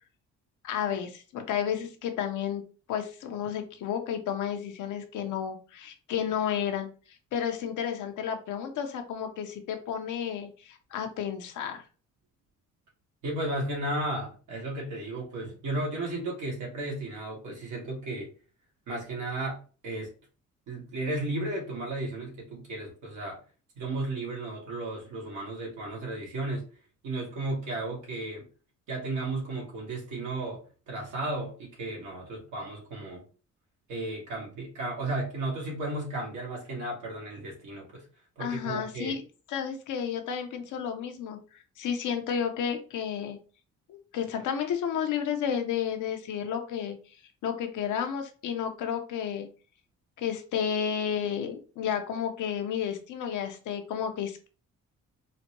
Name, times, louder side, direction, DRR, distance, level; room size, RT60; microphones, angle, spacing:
voice 1, 0.6-2.6 2.9-6.9 7.3-11.8 38.4-39.2 39.5-43.4 43.9-47.0 47.4-49.5 50.2-54.5, left 8 dB, 80° left, 5 dB, 0.8 m, -32 dB
voice 2, 13.2-18.3 18.9-19.6 19.8-20.1 20.7-23.4 23.8-26.7 27.0-28.4 28.9-33.2 33.9-38.0 38.4-39.2, right 2 dB, 80° right, -2 dB, 1.7 m, -34 dB
4.1 x 2.1 x 2.9 m, 0.36 s
cardioid pair, 90°, 30 cm